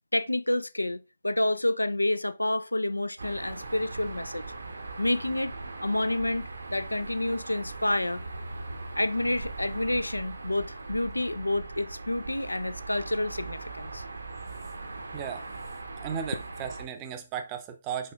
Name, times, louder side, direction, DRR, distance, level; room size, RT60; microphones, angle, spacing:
voice 1, 0.1-4.4 5.0-5.5 5.8-8.2 9.0-14.0, left 1 dB, 80° left, 0.4 m, -29 dB
sound 1, 3.2-16.9, right 3 dB, 65° right, 0.7 m, -40 dB
voice 2, 15.1-15.4 16.0-18.1, right 8 dB, 20° right, 0.6 m, -35 dB
4.9 x 4.3 x 2.4 m
figure-of-eight pair, 140°, 0 cm